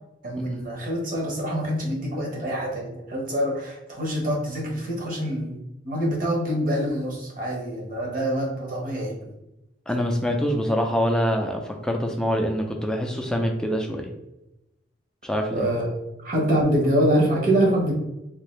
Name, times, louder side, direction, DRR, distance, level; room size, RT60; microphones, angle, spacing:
voice 1, 0.2-9.3 15.5-15.9 16.2-17.9, equal, 45° right, -2 dB, 0.9 m, -25 dB
voice 2, 9.9-14.1 15.2-15.7, equal, 5° left, 2 dB, 0.4 m, -25 dB
3.6 x 2.5 x 3.1 m, 0.91 s
head